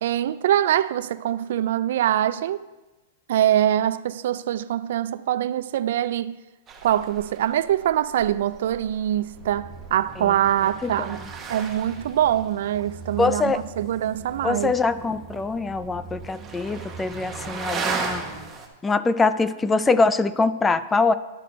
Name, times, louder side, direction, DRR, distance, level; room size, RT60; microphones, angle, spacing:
voice 1, 0.0-2.6 3.3-6.4 6.8-11.2 11.5-14.7, right 11 dB, 70° right, 0.3 m, -23 dB
sound 1, 6.7-18.7, right 5 dB, 20° right, 1.2 m, -37 dB
sound 2, 9.3-18.5, right 5 dB, 45° right, 1.4 m, -42 dB
voice 2, 13.2-13.6 14.4-18.2 18.8-21.1, left 3 dB, 10° left, 0.3 m, -23 dB
11.5 x 4.3 x 5.0 m
hypercardioid pair, 140°, 0 cm